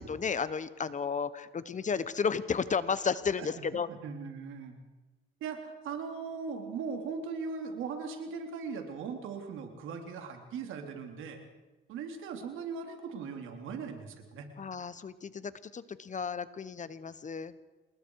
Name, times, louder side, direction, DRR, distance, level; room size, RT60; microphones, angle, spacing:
voice 1, 0.0-3.9 14.6-17.5, left 6 dB, 40° left, 15 dB, 1.2 m, -33 dB
voice 2, 4.0-4.8 5.4-11.4 11.9-14.5, right 5 dB, 85° right, 4 dB, 3.4 m, -39 dB
27.5 x 20.5 x 4.8 m, 1.2 s
cardioid pair, 90°, 20 cm